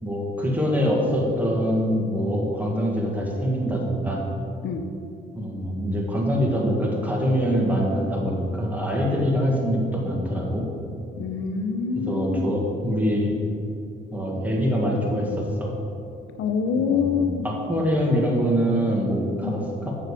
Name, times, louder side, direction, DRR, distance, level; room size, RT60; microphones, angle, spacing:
voice 1, 0.0-4.2 5.3-10.7 12.0-13.4 14.1-15.7 16.7-17.2 17.4-19.9, equal, 10° right, -2 dB, 1.8 m, -24 dB
voice 2, 11.2-12.6 16.4-17.6 19.4-19.6, left 6 dB, 90° left, 7 dB, 0.8 m, -26 dB
7.8 x 6.5 x 4.9 m, 2.6 s
cardioid pair, 90°, 20 cm